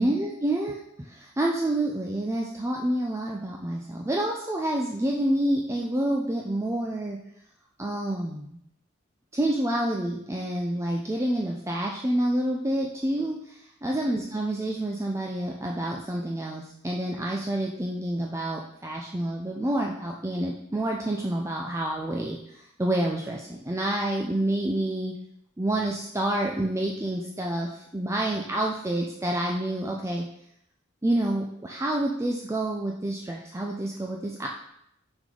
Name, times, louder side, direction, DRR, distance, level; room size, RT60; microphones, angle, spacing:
voice 1, 0.0-7.2 7.8-8.6 9.3-25.2 25.6-30.2 31.0-34.5, right 1 dB, 15° right, -1 dB, 0.5 m, -28 dB
6.3 x 5.3 x 3.9 m, 0.74 s
head